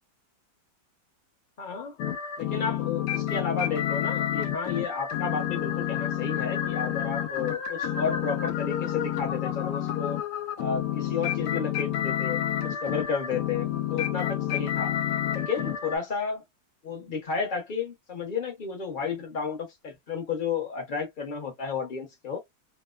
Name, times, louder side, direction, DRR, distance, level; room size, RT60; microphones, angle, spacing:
voice 1, 1.6-2.0 2.4-10.2 10.6-15.0 15.3-16.4 16.8-22.4, left 5 dB, 40° left, 0.8 m, -32 dB
sound 1, 2.0-16.0, left 10 dB, 70° left, 1.1 m, -29 dB
2.9 x 2.1 x 2.2 m
omnidirectional pair, 1.9 m